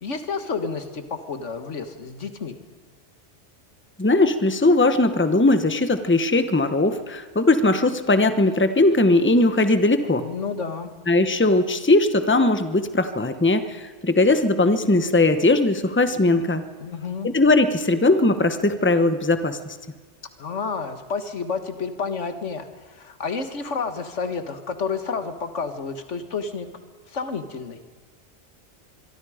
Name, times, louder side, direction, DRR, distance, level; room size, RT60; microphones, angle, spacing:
voice 1, 0.0-2.6 10.2-10.9 16.8-17.3 20.4-26.7 27.1-27.8, left 5 dB, 85° left, 8 dB, 1.9 m, -30 dB
voice 2, 4.0-10.3 11.1-16.6 17.2-19.8, left 2 dB, 10° left, 9 dB, 1.0 m, -19 dB
25.0 x 23.0 x 5.0 m, 1.4 s
omnidirectional pair, 1.2 m